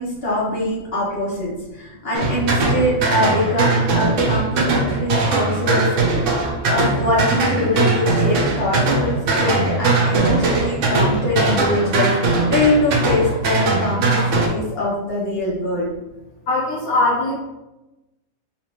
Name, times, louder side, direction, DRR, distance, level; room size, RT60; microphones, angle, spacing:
voice 1, 0.0-6.3 6.7-15.9, left 1 dB, 45° left, -7 dB, 1.5 m, -23 dB
sound 1, 2.1-14.5, right 3 dB, 65° right, 0.9 m, -20 dB
voice 2, 16.5-17.3, left 2 dB, 75° left, -5 dB, 1.2 m, -20 dB
4.0 x 2.7 x 3.0 m, 0.98 s
omnidirectional pair, 1.5 m